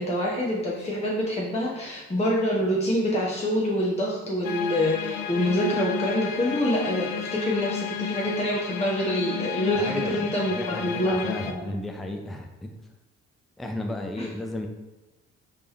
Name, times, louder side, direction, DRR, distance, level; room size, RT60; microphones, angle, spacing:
voice 1, 0.0-11.7 14.2-14.3, equal, 15° left, -4 dB, 0.9 m, -26 dB
sound 1, 4.4-11.5, left 8 dB, 60° left, 0.5 m, -32 dB
voice 2, 9.7-12.7 13.6-14.7, left 1 dB, ahead, 4 dB, 0.4 m, -34 dB
3.3 x 3.3 x 3.0 m, 1.1 s
hypercardioid pair, 40°, 37 cm